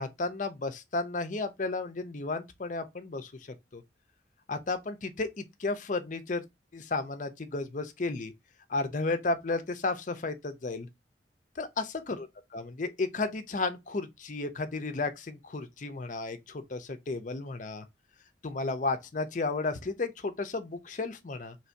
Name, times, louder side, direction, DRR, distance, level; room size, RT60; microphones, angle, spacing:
voice 1, 0.0-3.3 3.7-3.8 4.5-6.4 6.7-8.3 8.7-10.9 11.6-12.3 12.5-17.8 18.4-21.6, left 3 dB, 45° left, 0.6 m, -33 dB
3.1 x 2.6 x 4.4 m
head